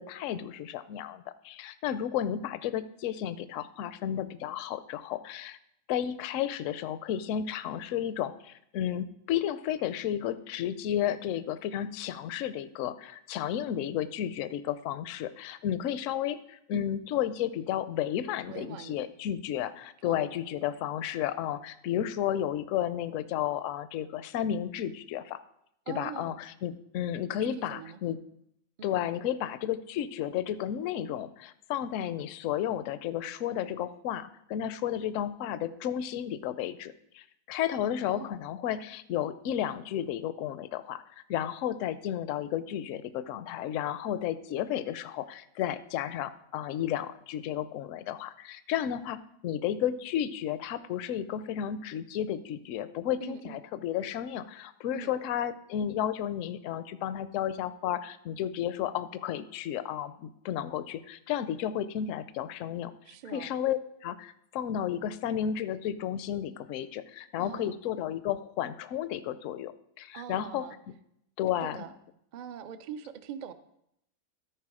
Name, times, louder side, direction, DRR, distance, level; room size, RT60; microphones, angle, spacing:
voice 1, 0.0-5.6 5.9-25.4 25.9-28.2 28.8-41.0 41.3-62.9 63.3-70.6 71.4-71.8, left 10 dB, 70° left, 14 dB, 0.9 m, -32 dB
voice 2, 18.5-19.1 20.1-20.4 25.9-26.4 27.4-28.0 28.8-28.9 38.1-38.3 53.2-53.6 54.9-55.1 63.0-63.5 67.4-67.8 70.1-70.7 71.6-71.9 72.3-73.5, right 8 dB, 70° right, 10 dB, 0.4 m, -42 dB
13.5 x 4.6 x 4.8 m, 0.76 s
omnidirectional pair, 1.5 m